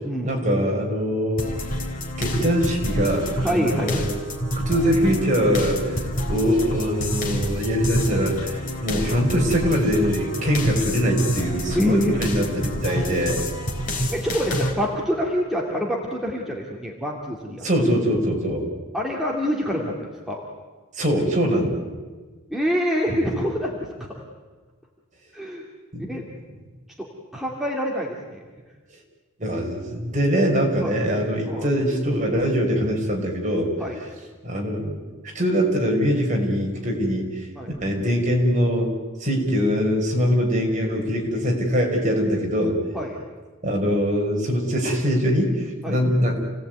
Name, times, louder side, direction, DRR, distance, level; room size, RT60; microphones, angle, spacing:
voice 1, 0.2-1.5 2.2-4.1 4.5-12.5 12.8-13.4 17.6-18.6 20.9-21.8 25.9-26.0 29.4-33.7 34.4-35.0 35.3-37.5 37.8-38.9 39.2-42.8 43.6-46.4, equal, 35° right, 0 dB, 5.7 m, -22 dB
sound 1, 1.4-14.7, equal, 40° left, 4.0 m, -27 dB
voice 2, 3.4-4.1 11.7-12.2 14.1-17.6 18.9-20.4 22.5-24.2 25.3-25.6 26.1-26.2 27.0-27.1 27.3-28.4 30.8-31.0 31.4-31.7 33.8-34.0 37.6-37.7 42.9-43.2 45.8-46.0, equal, ahead, -2 dB, 2.6 m, -26 dB
29.5 x 18.5 x 9.5 m, 1.4 s
head